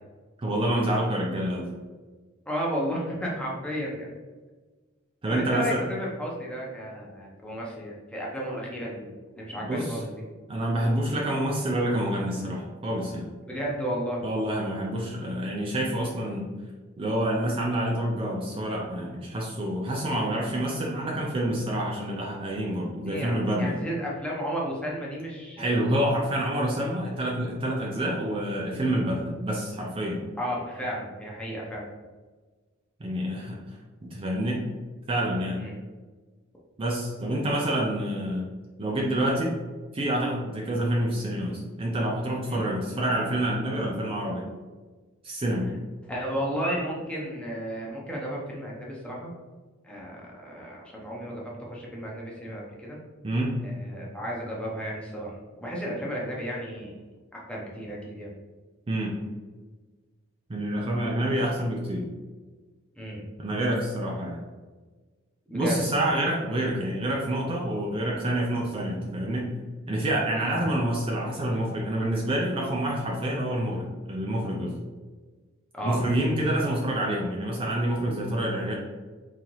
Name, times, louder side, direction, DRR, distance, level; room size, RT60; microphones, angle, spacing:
voice 1, 0.4-1.7 5.2-5.8 9.6-10.0 10.5-13.3 14.2-16.5 17.0-23.8 25.6-30.2 33.0-34.7 35.1-35.6 36.8-38.5 38.8-39.6 39.9-44.5 45.2-45.7 53.2-53.6 58.9-59.2 60.5-62.1 63.4-64.4 65.5-69.5 69.9-74.8 75.8-78.7, right 1 dB, 25° right, -2 dB, 0.4 m, -27 dB
voice 2, 2.5-4.1 5.3-10.1 13.5-14.2 23.1-25.9 30.4-31.8 35.6-35.8 42.5-42.7 46.1-49.3 49.8-53.0 53.6-55.3 55.6-57.0 57.3-58.3 63.0-63.2 65.5-65.8 70.3-70.5 75.7-76.0, equal, 5° left, -4 dB, 0.7 m, -33 dB
3.8 x 2.8 x 3.0 m, 1.3 s
head